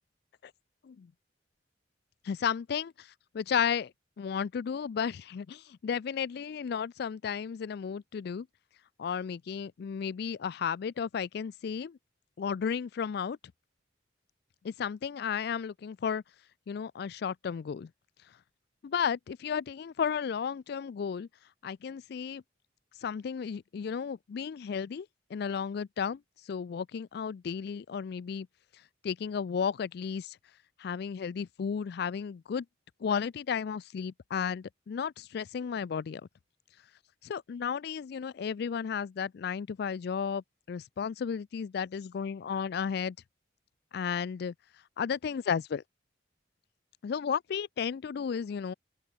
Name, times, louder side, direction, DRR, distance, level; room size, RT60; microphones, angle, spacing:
voice 1, 2.2-3.1 3.3-8.5 9.0-12.0 12.4-13.4 14.6-16.2 16.7-17.9 18.8-21.3 21.6-22.4 23.0-25.1 25.3-26.2 26.5-28.5 29.0-30.4 30.8-32.7 33.0-36.2 37.2-43.2 43.9-44.5 45.0-45.8 47.0-48.7, left 7 dB, 55° left, 0.3 m, -33 dB
open air
head